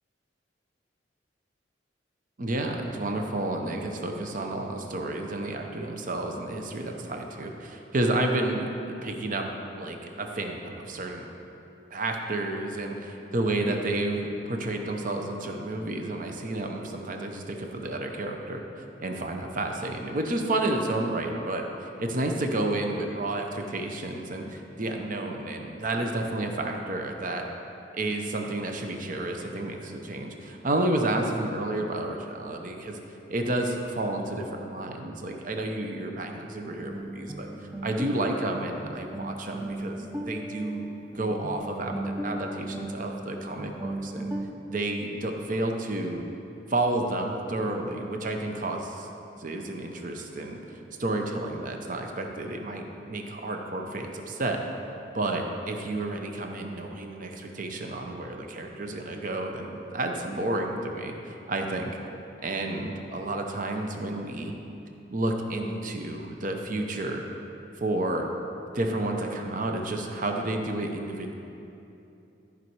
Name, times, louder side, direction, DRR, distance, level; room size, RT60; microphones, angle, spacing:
voice 1, 2.4-9.5 9.7-11.2 11.9-27.5 27.9-33.0 33.3-37.5 37.8-40.8 41.1-44.3 44.7-46.2 46.7-49.1 49.4-54.6 55.1-61.9 62.4-64.5 65.1-67.2 67.8-68.3 68.7-71.3, right 2 dB, 45° right, 3 dB, 0.8 m, -31 dB
sound 1, 36.7-44.5, right 1 dB, 10° right, 0.5 m, -37 dB
13.5 x 5.3 x 4.7 m, 2.9 s
head